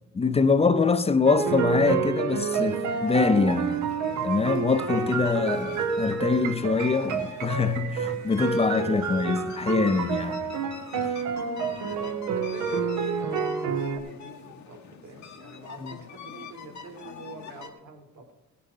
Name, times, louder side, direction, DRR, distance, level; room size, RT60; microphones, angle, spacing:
voice 1, 0.1-3.8 4.2-10.4 11.0-11.1 15.8-15.9, left 4 dB, 20° left, 0.6 m, -24 dB
sound 1, 1.2-14.0, right 6 dB, 85° right, 1.1 m, -29 dB
sound 2, 2.5-17.7, left 6 dB, 70° left, 1.4 m, -44 dB
voice 2, 11.5-18.3, right 3 dB, 65° right, 2.4 m, -46 dB
16.0 x 6.7 x 5.4 m
cardioid pair, 90°, 30 cm